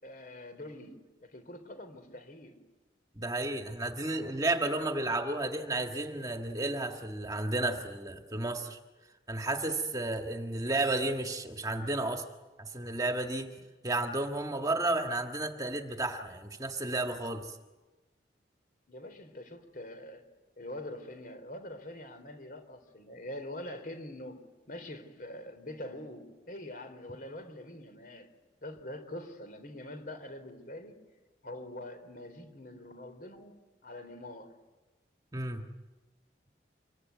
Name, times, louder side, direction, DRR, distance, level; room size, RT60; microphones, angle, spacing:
voice 1, 0.0-2.6 18.9-20.2 20.6-24.4 24.7-28.3 28.6-31.0 31.4-33.6 33.8-34.5, left 1 dB, 50° left, 9 dB, 3.8 m, -44 dB
voice 2, 3.2-8.8 9.3-12.2 12.6-13.5 13.8-17.6 35.3-35.6, right 2 dB, 20° right, 4 dB, 1.7 m, -32 dB
26.0 x 23.0 x 9.5 m, 1.2 s
head